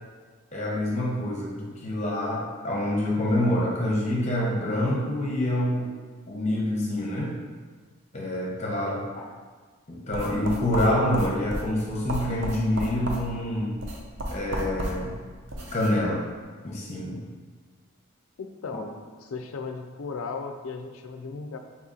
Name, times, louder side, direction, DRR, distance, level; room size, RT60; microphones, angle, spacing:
voice 1, 0.5-5.9 6.3-7.3 8.1-9.0 9.9-13.7 14.3-15.1 15.7-16.2 16.6-17.2, left 1 dB, 30° left, -5 dB, 0.8 m, -26 dB
sound 1, 10.1-16.0, equal, 55° right, 0.6 m, -34 dB
voice 2, 18.4-18.9 19.2-21.6, left 4 dB, 75° left, 5 dB, 0.4 m, -36 dB
4.2 x 2.9 x 3.7 m, 1.4 s
head